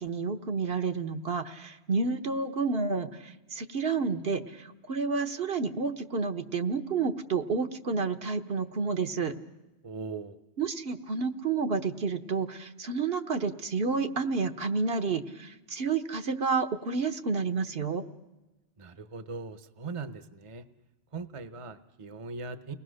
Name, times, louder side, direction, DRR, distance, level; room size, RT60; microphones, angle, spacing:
voice 1, 0.0-9.3 10.6-18.0, right 4 dB, 65° right, 6 dB, 1.3 m, -30 dB
voice 2, 9.8-10.4 18.8-20.7 21.1-22.7, right 4 dB, 35° right, 11 dB, 0.9 m, -40 dB
30.0 x 19.5 x 6.4 m, 1.1 s
omnidirectional pair, 1.1 m